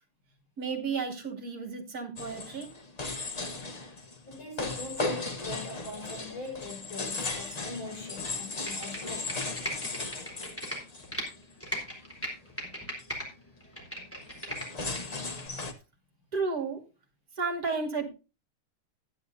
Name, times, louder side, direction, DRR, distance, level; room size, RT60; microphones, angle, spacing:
voice 1, 0.6-2.7 16.3-16.8 17.4-18.1, right 4 dB, 45° right, 3.2 m, -32 dB
sound 1, 2.2-11.5 11.9-12.3 12.6-12.7 13.0-13.2 14.2-15.7, left 3 dB, 35° left, 0.7 m, -37 dB
voice 2, 4.3-9.4, left 2 dB, 65° left, 6.4 m, -41 dB
Computer keyboard, 8.5-11.3 11.6-13.3 13.6-15.0 15.4-15.5, equal, 5° left, 3.7 m, -37 dB
14.5 x 10.0 x 2.7 m
omnidirectional pair, 2.3 m